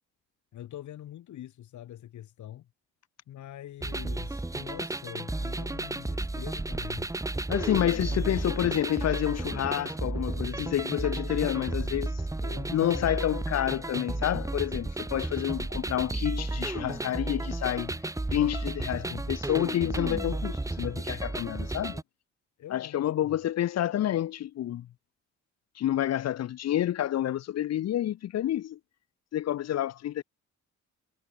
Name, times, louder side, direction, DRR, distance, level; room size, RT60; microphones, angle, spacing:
voice 1, 0.5-2.7 3.3-7.1 7.6-7.7 8.0-8.7 12.4-13.1 22.6-23.4, left 12 dB, 75° left, 3.2 m, -44 dB
sound 1, 3.8-22.0, right 2 dB, 10° right, 1.2 m, -33 dB
voice 2, 7.5-12.2 12.7-17.9 18.3-22.0 22.7-24.9 25.8-28.8 29.3-30.2, left 12 dB, 60° left, 0.7 m, -29 dB
cardioid pair, 90°, 30 cm